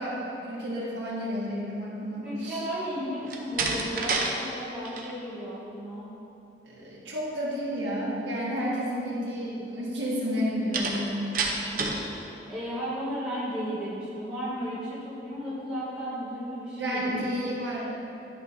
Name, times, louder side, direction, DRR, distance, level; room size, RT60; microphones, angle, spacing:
voice 1, 0.0-2.6 6.6-11.2 16.8-17.9, equal, 85° right, -5 dB, 1.5 m, -31 dB
voice 2, 2.2-6.1 10.2-10.5 11.6-12.0 12.5-17.4, equal, 5° right, -11 dB, 1.4 m, -34 dB
Slam, 3.2-4.3 4.7-5.1 10.7-12.1, right 3 dB, 50° right, 0.7 m, -29 dB
10.5 x 5.9 x 2.7 m, 2.9 s
head